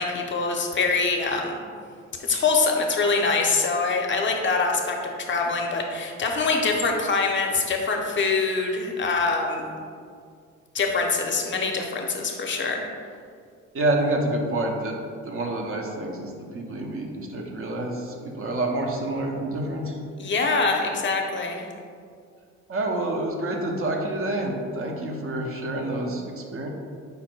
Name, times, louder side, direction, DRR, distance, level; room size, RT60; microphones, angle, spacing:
voice 1, 0.0-1.6 2.3-9.6 10.7-12.9 20.2-21.6, left 4 dB, 40° left, 2 dB, 0.6 m, -24 dB
voice 2, 13.7-14.9 15.2-20.0 22.7-26.7, right 1 dB, 45° right, 1 dB, 0.7 m, -28 dB
5.1 x 2.1 x 4.4 m, 2.1 s
cardioid pair, 90°, 30 cm